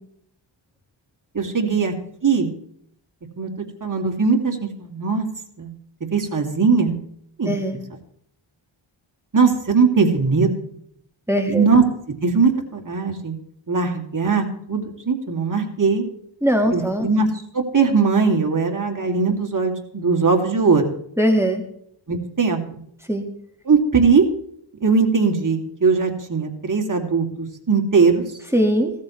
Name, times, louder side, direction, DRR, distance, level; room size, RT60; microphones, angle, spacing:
voice 1, 1.3-1.9 2.2-2.5 3.4-3.5 3.8-5.3 5.6-5.7 6.1-6.9 7.4-7.6 9.3-10.5 11.5-11.8 12.2-13.4 13.7-16.0 16.7-17.3 17.5-20.8 22.1-22.6 23.7-24.3 24.8-28.2, right 4 dB, 40° right, 1 dB, 2.6 m, -19 dB
voice 2, 7.5-7.8 11.3-11.7 16.4-17.1 21.2-21.6 23.1-23.3 28.5-28.9, equal, 5° right, 4 dB, 1.8 m, -20 dB
16.0 x 13.5 x 3.2 m, 0.69 s
wide cardioid pair, 75°, 48 cm